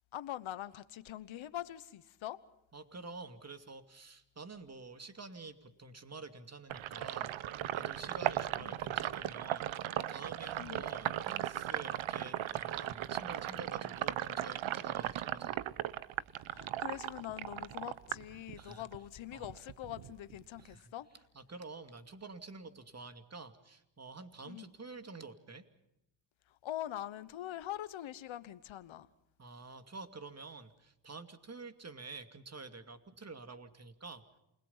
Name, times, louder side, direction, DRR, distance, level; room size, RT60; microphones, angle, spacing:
voice 1, 0.1-2.4 8.6-8.8 10.6-10.9 16.5-21.1 24.5-24.7 26.6-29.1, left 12 dB, 80° left, 1.2 m, -43 dB
voice 2, 2.7-7.3 7.7-9.7 10.1-15.6 18.6-18.9 19.3-19.5 20.6-20.9 21.3-25.7 29.4-34.2, right 3 dB, 35° right, 2.5 m, -49 dB
Sink (filling or washing), 6.7-19.0 19.3-20.7, right 12 dB, 85° right, 1.0 m, -37 dB
28.5 x 21.5 x 5.6 m
cardioid pair, 65°, 46 cm